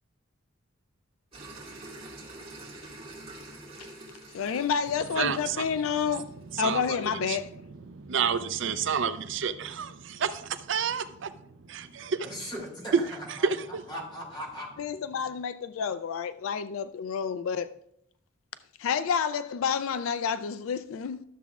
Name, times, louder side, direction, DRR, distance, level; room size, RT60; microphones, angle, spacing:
sound 1, 1.3-6.7, right 2 dB, 25° right, 2.3 m, -46 dB
voice 1, 4.3-7.5 14.8-17.7 18.8-21.2, left 6 dB, 75° left, 0.3 m, -29 dB
voice 2, 5.2-5.7 6.0-12.5 13.3-13.8, right 6 dB, 60° right, 0.4 m, -31 dB
voice 3, 12.2-13.5 13.9-14.7, equal, 25° left, 2.7 m, -38 dB
12.5 x 7.1 x 2.4 m
head